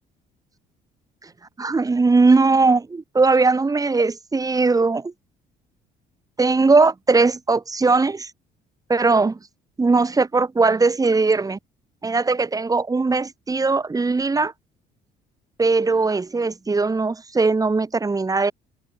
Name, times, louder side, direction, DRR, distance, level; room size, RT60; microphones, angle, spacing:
voice 1, 1.6-5.1 6.4-8.3 8.9-9.4 9.8-11.6 12.0-14.5 15.6-18.5, right 3 dB, 20° right, 7.1 m, -19 dB
cardioid pair, 110°, 17 cm